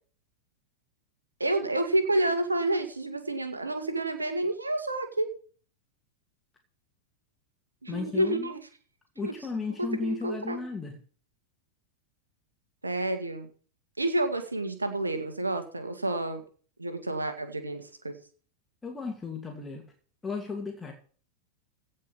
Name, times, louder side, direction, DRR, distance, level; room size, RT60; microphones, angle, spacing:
voice 1, 1.4-5.3 7.8-8.6 9.2-9.3 9.8-10.6 12.8-13.5 14.0-16.4 16.8-18.2, right 2 dB, 80° right, 7 dB, 2.1 m, -29 dB
voice 2, 7.9-8.5 9.2-11.0 18.8-19.8 20.2-20.9, left 4 dB, 10° left, 2 dB, 2.5 m, -34 dB
16.0 x 5.5 x 7.1 m, 0.42 s
figure-of-eight pair, 90°, 0 cm